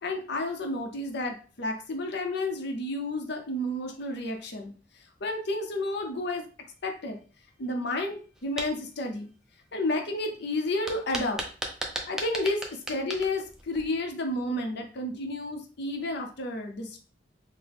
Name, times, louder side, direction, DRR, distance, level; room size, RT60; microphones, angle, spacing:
voice 1, 0.0-4.7 5.2-6.5 6.8-7.2 7.6-9.3 9.7-11.4 12.1-17.0, left 1 dB, 65° left, 4 dB, 0.7 m, -31 dB
sound 1, 8.4-8.7 10.9-14.1, right 1 dB, 5° right, 0.5 m, -35 dB
3.8 x 2.1 x 3.5 m, 0.38 s
head